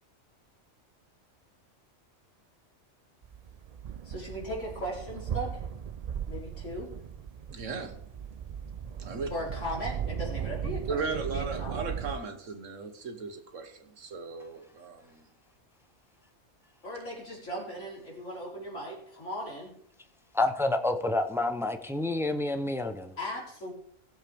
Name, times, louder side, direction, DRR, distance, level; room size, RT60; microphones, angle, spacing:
sound 1, 3.2-12.2, right 8 dB, 60° right, 0.4 m, -37 dB
voice 1, 4.0-5.6 6.3-6.9 9.3-11.0 11.3-11.8 16.8-19.7 23.2-23.7, equal, 90° left, 4.3 m, -37 dB
voice 2, 7.5-8.0 9.0-9.3 10.9-15.2, right 4 dB, 85° right, 1.6 m, -36 dB
voice 3, 20.3-23.2, left 2 dB, 5° right, 0.5 m, -28 dB
18.5 x 7.4 x 3.5 m
omnidirectional pair, 1.3 m